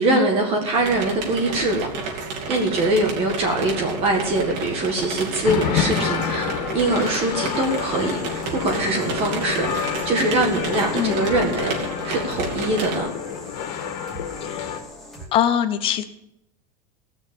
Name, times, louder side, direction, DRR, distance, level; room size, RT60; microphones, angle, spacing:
voice 1, 0.0-1.9 2.5-11.8 12.0-13.1, right 2 dB, 30° right, 1 dB, 1.8 m, -23 dB
sound 1, 0.7-13.0, right 4 dB, 85° right, 3.3 m, -31 dB
sound 2, 5.4-14.8, left 8 dB, 75° left, 2.0 m, -29 dB
sound 3, 6.8-15.3, left 1 dB, ahead, 2.6 m, -42 dB
voice 2, 15.3-16.0, left 10 dB, 25° left, 10 dB, 0.8 m, -22 dB
16.5 x 6.4 x 7.1 m, 0.83 s
supercardioid pair, 175°, 20 cm